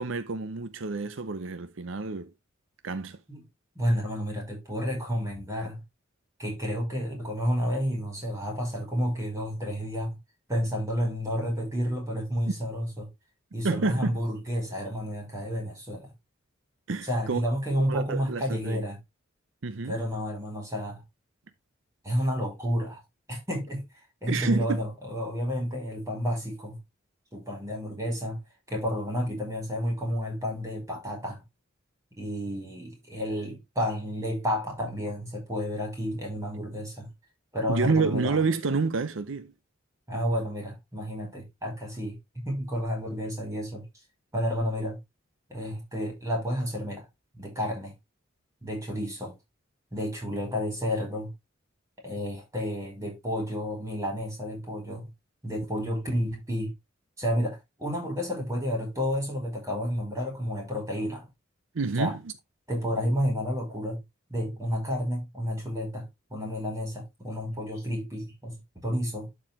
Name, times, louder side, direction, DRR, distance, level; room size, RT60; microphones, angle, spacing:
voice 1, 0.0-2.3 2.8-3.2 13.6-14.2 16.9-17.5 17.9-18.9 19.6-20.0 24.3-24.8 37.7-39.5 61.7-62.3, right 4 dB, 70° right, 0.7 m, -28 dB
voice 2, 3.8-5.8 6.4-10.2 10.5-13.1 13.5-16.1 17.0-19.0 19.8-21.0 22.0-23.0 23.3-23.8 24.2-26.8 27.3-28.4 28.7-31.4 32.2-37.1 37.5-38.4 40.1-43.8 44.3-45.0 45.5-47.0 47.3-47.9 48.6-49.3 49.9-51.3 52.0-55.1 55.4-56.7 57.2-61.3 62.0-62.1 62.7-64.0 64.3-69.3, equal, 15° right, 5.5 m, -31 dB
12.0 x 4.8 x 3.6 m
head